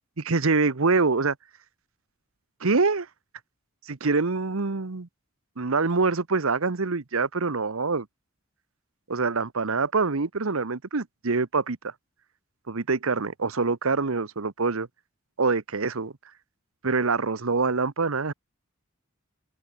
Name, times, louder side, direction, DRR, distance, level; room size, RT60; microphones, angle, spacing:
voice 1, 0.3-1.3 2.6-3.1 3.9-5.1 5.6-8.1 9.1-11.9 12.7-14.9 15.4-16.1 16.8-18.3, right 4 dB, 70° right, 1.0 m, -25 dB
head